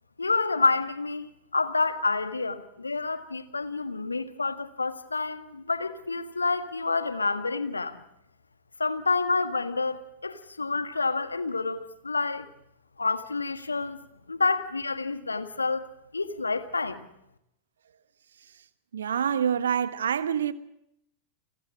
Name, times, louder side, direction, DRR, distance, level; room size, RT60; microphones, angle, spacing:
voice 1, 0.2-8.0 8.8-12.4 13.0-14.0 14.3-15.8 16.1-17.1, left 3 dB, 80° left, 1.7 m, -28 dB
voice 2, 18.9-20.5, right 8 dB, 65° right, 1.3 m, -26 dB
30.0 x 24.5 x 3.7 m
figure-of-eight pair, 90°, 0 cm